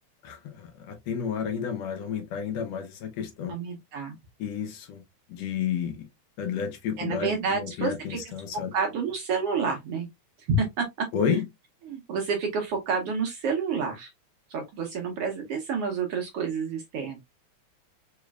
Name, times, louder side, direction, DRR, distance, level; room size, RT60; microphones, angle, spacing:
voice 1, 0.2-3.6 4.4-5.0 5.3-6.1 6.4-8.7 11.1-11.5, left 7 dB, 70° left, 1.8 m, -31 dB
voice 2, 3.5-4.1 7.0-8.2 8.7-10.1 10.4-10.9 11.3-11.4 11.9-14.1 14.5-17.2, right 5 dB, 70° right, 1.4 m, -29 dB
4.8 x 3.1 x 2.2 m
omnidirectional pair, 3.3 m